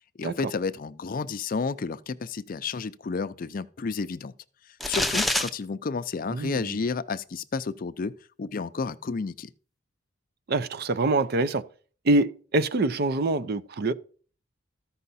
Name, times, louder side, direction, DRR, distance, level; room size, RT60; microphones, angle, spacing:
voice 1, 0.2-4.3 4.9-9.5, left 4 dB, 45° left, 0.4 m, -31 dB
sound 1, 4.8-5.5, left 1 dB, ahead, 0.6 m, -25 dB
voice 2, 6.3-6.7 10.5-11.6 12.0-13.9, right 2 dB, 50° right, 0.5 m, -25 dB
14.0 x 5.6 x 4.1 m
head